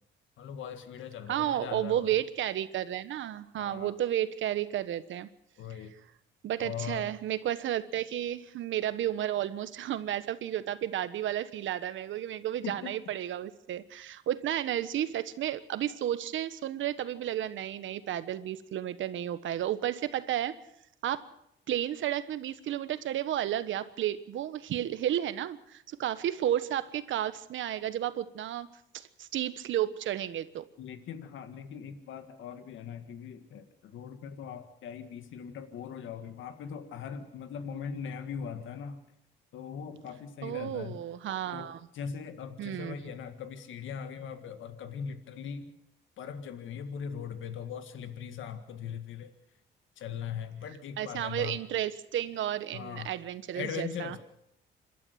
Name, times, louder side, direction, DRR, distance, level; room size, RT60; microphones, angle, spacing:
voice 1, 0.4-2.1 3.6-4.0 5.6-5.9 6.6-7.1 12.6-12.9 30.8-39.0 39.5-41.0 41.5-45.7 46.2-49.3 50.0-51.6 52.7-53.1 53.5-54.2, left 7 dB, 80° left, 9 dB, 1.8 m, -40 dB
voice 2, 1.3-5.3 6.4-20.6 21.0-21.3 21.7-28.7 28.9-30.6 40.4-41.9 42.6-43.0 51.0-54.2, right 11 dB, 75° right, 13 dB, 1.3 m, -32 dB
27.0 x 12.5 x 8.0 m, 0.75 s
cardioid pair, 90°, 20 cm